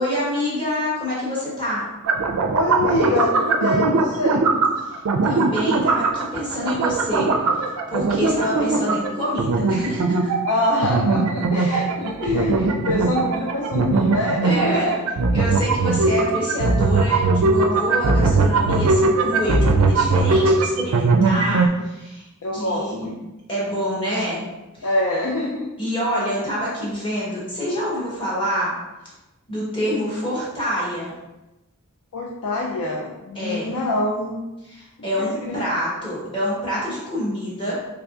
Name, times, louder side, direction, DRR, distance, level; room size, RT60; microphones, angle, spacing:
voice 1, 0.0-1.8 4.8-4.9 5.2-7.3 7.6-10.3 11.6-11.9 12.2-12.5 14.4-14.9 15.3-22.3 22.5-23.1 23.5-24.4 24.7-24.9 25.8-28.7 29.5-31.1 33.3-33.7 34.7-37.7, equal, 25° left, -6 dB, 1.1 m, -26 dB
sound 1, 2.0-21.7, right 3 dB, 80° right, 0.4 m, -20 dB
voice 2, 2.5-4.6 8.1-8.5 10.5-15.0 21.2-21.8 22.4-23.2 24.8-25.7 32.1-34.4 35.2-35.6, left 2 dB, 85° left, -2 dB, 0.5 m, -25 dB
3.5 x 3.3 x 2.4 m, 1.0 s
head